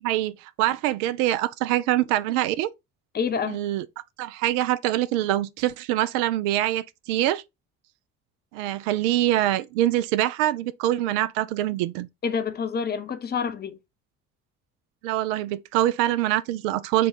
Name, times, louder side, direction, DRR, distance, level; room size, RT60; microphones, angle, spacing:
voice 1, 0.0-2.7 3.5-3.8 4.2-7.4 8.5-12.1 15.0-17.1, right 14 dB, 60° right, 0.5 m, -24 dB
voice 2, 3.1-3.6 12.2-13.8, left 6 dB, 20° left, 0.7 m, -27 dB
4.8 x 2.3 x 4.1 m
figure-of-eight pair, 50°, 44 cm